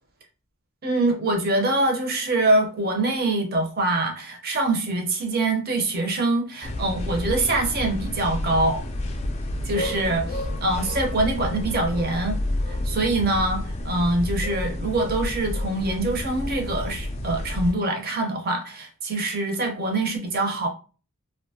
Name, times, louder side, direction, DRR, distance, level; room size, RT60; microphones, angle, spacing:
voice 1, 0.8-8.8 9.6-12.4 12.7-20.7, right 2 dB, 45° right, 3 dB, 0.6 m, -24 dB
sound 1, 6.6-17.7, left 1 dB, 30° left, 0.3 m, -30 dB
2.6 x 2.2 x 2.6 m, 0.36 s
head